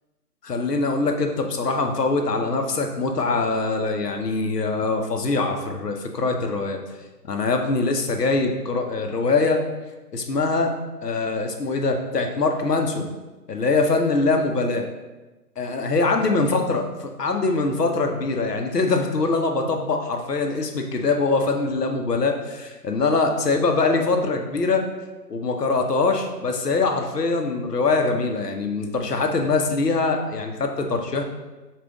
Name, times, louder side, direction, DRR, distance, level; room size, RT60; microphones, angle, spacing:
voice 1, 0.4-6.8 7.2-9.6 10.1-10.7 11.0-13.1 13.5-14.9 15.6-24.8 25.3-31.3, left 3 dB, 70° left, 3 dB, 0.8 m, -23 dB
5.3 x 2.5 x 3.4 m, 1.1 s
figure-of-eight pair, 170°, 49 cm